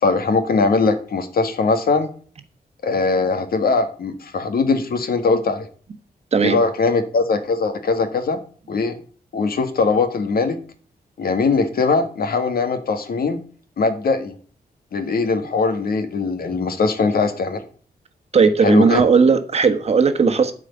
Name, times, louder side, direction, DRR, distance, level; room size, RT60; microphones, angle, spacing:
voice 1, 0.0-2.1 2.8-5.7 6.4-8.4 8.7-9.0 9.3-10.6 11.2-13.4 13.8-14.3 14.9-17.6 18.6-19.0, left 4 dB, 70° left, 8 dB, 1.8 m, -20 dB
voice 2, 18.3-20.5, right 5 dB, 40° right, 8 dB, 1.3 m, -16 dB
12.5 x 4.9 x 8.0 m, 0.43 s
wide cardioid pair, 170°, 16 cm